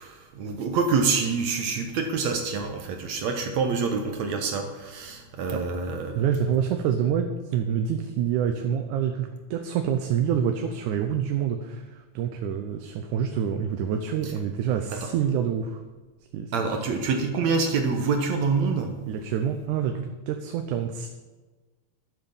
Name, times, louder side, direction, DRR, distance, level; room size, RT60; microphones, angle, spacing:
voice 1, 0.0-6.3 14.2-14.3 14.9-15.1 16.5-19.0, right 4 dB, 70° right, 4 dB, 2.3 m, -26 dB
voice 2, 6.2-11.8 12.2-15.8 16.3-16.5 19.1-21.1, right 8 dB, 85° right, 6 dB, 2.3 m, -27 dB
11.5 x 8.0 x 7.1 m, 1.3 s
omnidirectional pair, 3.4 m